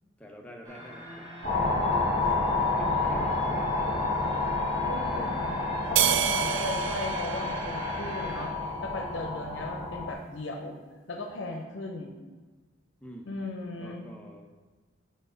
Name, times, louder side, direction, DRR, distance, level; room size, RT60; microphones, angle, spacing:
voice 1, 0.2-1.2 2.0-2.2 2.7-4.4 6.4-6.7 13.0-14.4, equal, 5° left, 1 dB, 0.6 m, -47 dB
sound 1, 0.6-8.5, equal, 20° right, 1.6 m, -43 dB
sound 2, 1.4-10.1, left 3 dB, 30° left, 1.6 m, -29 dB
voice 2, 4.8-10.8 11.1-12.2 13.3-14.0, left 2 dB, 70° left, 3 dB, 0.6 m, -37 dB
sound 3, 6.0-8.6, right 11 dB, 75° right, 0.3 m, -29 dB
5.0 x 4.5 x 5.1 m, 1.3 s
head